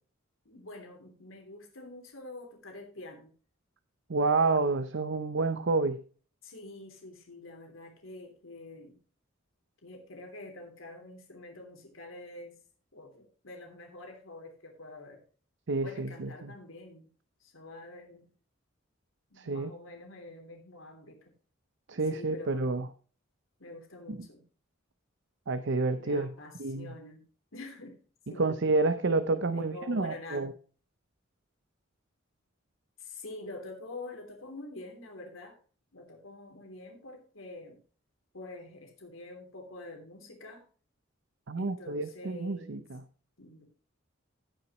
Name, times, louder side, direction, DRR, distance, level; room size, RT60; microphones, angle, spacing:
voice 1, 0.4-3.3 6.4-9.0 9.8-12.6 12.9-15.2 15.8-17.1 17.4-18.3 19.3-21.3 22.1-22.7 23.6-24.4 26.0-27.2 27.5-28.0 28.3-28.5 29.4-30.5 33.0-35.6 35.9-37.8 38.3-40.6 41.5-42.9 43.4-43.6, left 2 dB, 90° left, 2 dB, 3.2 m, -46 dB
voice 2, 4.1-6.0 15.7-16.5 19.4-19.7 21.9-22.9 24.1-24.2 25.5-26.3 26.6-26.9 28.4-30.5 41.5-43.0, right 3 dB, 65° right, 11 dB, 0.7 m, -29 dB
17.0 x 5.9 x 3.1 m, 0.40 s
head